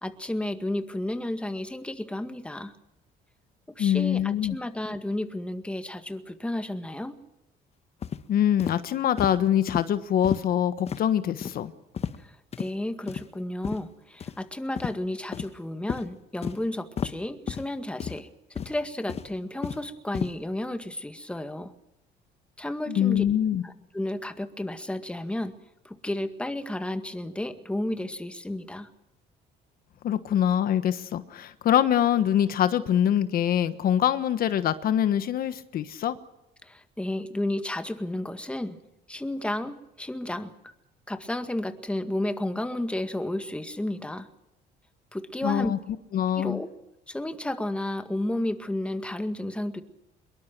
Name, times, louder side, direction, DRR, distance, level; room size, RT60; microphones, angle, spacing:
voice 1, 0.0-2.7 3.7-7.2 12.2-21.7 22.6-23.2 23.6-25.5 25.9-28.9 36.6-38.8 39.1-40.5 41.1-44.3 45.1-45.7 46.4-46.7 47.1-49.8, left 1 dB, 5° left, 8 dB, 1.9 m, -32 dB
voice 2, 3.8-4.5 8.3-11.7 22.9-23.6 30.0-36.2 45.4-45.8 46.1-46.6, left 10 dB, 60° left, 11 dB, 1.3 m, -24 dB
sound 1, 8.0-8.2 8.6-8.8 9.2-9.4 9.7-9.8 10.2-10.5 10.9-11.0 11.4-11.6 12.0-12.2 12.5-12.7 13.1-13.3 13.6-13.8 14.2-14.4 14.8-14.9 15.3-15.6 15.9-16.0 16.4-16.6 17.0-17.1 17.5-17.7 18.0-18.2 18.6-18.8 19.1-19.8 20.1-20.3, left 7 dB, 40° left, 1.2 m, -32 dB
24.0 x 22.0 x 6.1 m, 0.88 s
cardioid pair, 110°, 17 cm